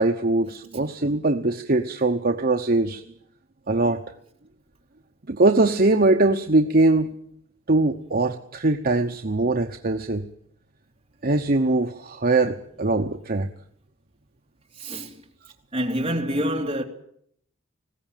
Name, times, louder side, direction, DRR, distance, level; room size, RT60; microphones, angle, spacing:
voice 1, 0.0-3.0 3.7-4.0 5.3-7.1 7.7-10.2 11.2-13.5, right 2 dB, 45° right, 0.9 m, -21 dB
voice 2, 14.8-15.2 15.7-16.8, equal, 25° right, 2.7 m, -26 dB
20.0 x 16.5 x 9.0 m
head